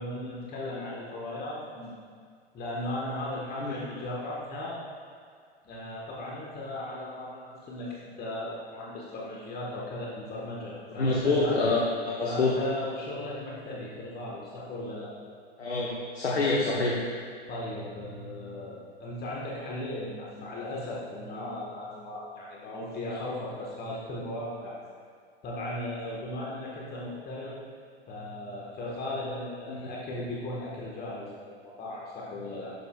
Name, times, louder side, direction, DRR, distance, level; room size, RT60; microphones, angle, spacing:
voice 1, 0.0-1.9 2.5-4.8 5.6-11.6 12.2-15.1 17.5-24.8 25.4-27.5 28.1-31.3 31.6-32.7, left 1 dB, 30° left, -5 dB, 1.6 m, -37 dB
voice 2, 11.0-12.5 15.6-17.0 29.7-29.9, left 3 dB, 85° left, -4 dB, 1.3 m, -26 dB
11.0 x 7.0 x 2.5 m, 2.1 s
hypercardioid pair, 95°, 31 cm